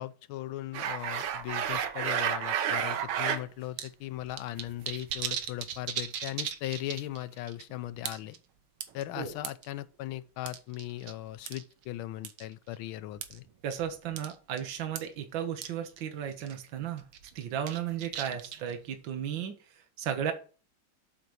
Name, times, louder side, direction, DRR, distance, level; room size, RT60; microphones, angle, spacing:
voice 1, 0.0-8.4 8.9-13.5, left 14 dB, 85° left, 1.5 m, -38 dB
sound 1, 0.7-3.4 3.8-3.9 4.2-7.2 7.5-7.6 8.1-8.4 8.8-9.6 10.5-11.1 11.5-11.6 12.2-12.4 13.2-13.4 13.7-13.8 14.2-14.3 14.6-14.7 15.0-15.1 15.6-15.7 16.0-16.1 16.4-16.7 17.1-18.7, right 8 dB, 85° right, 1.8 m, -33 dB
voice 2, 13.6-17.0 17.3-20.3, right 9 dB, 70° right, 1.8 m, -35 dB
8.3 x 4.0 x 6.2 m
omnidirectional pair, 2.2 m